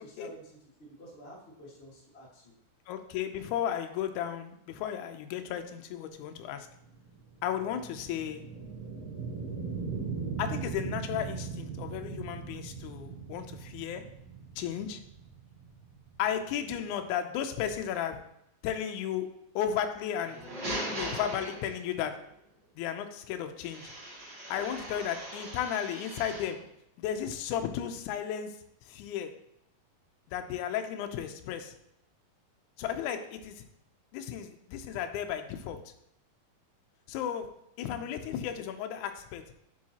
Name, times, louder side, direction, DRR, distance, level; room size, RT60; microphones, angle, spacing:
voice 1, 0.0-2.5, right 1 dB, 35° left, -4 dB, 1.0 m, -50 dB
voice 2, 2.9-6.7 7.4-8.4 10.4-14.0 14.6-15.0 16.2-18.2 18.6-19.3 19.5-20.4 20.9-22.1 22.7-23.9 24.5-26.6 27.0-28.5 28.9-29.3 30.3-31.8 32.8-33.6 34.1-35.8 37.1-37.5 37.8-39.4, left 9 dB, 90° left, 6 dB, 1.7 m, -34 dB
sound 1, 6.4-17.1, right 5 dB, 60° right, 3.7 m, -39 dB
sound 2, 20.1-22.1 23.6-26.6, right 1 dB, 35° right, 2.3 m, -40 dB
7.6 x 6.3 x 2.8 m, 0.78 s
omnidirectional pair, 4.2 m